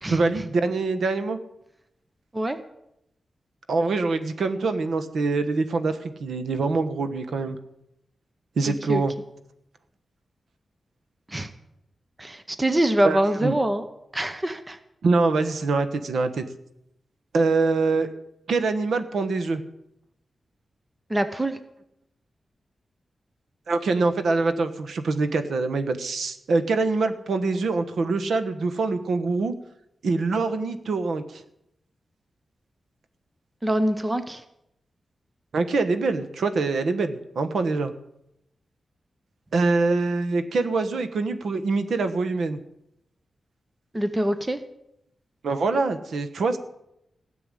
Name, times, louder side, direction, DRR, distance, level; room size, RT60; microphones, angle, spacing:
voice 1, 0.1-1.4 3.7-7.6 8.6-9.1 13.0-13.6 15.0-16.4 17.3-18.1 18.5-19.6 23.7-29.5 30.0-31.4 35.5-37.9 39.5-42.6 45.4-46.6, right 3 dB, 70° right, 9 dB, 1.2 m, -24 dB
voice 2, 8.7-9.0 11.3-11.5 12.2-13.8 14.1-14.8 21.1-21.6 33.6-34.4 43.9-44.6, right 1 dB, 15° right, 10 dB, 0.8 m, -24 dB
16.5 x 6.9 x 9.8 m, 0.81 s
wide cardioid pair, 175°, 0 cm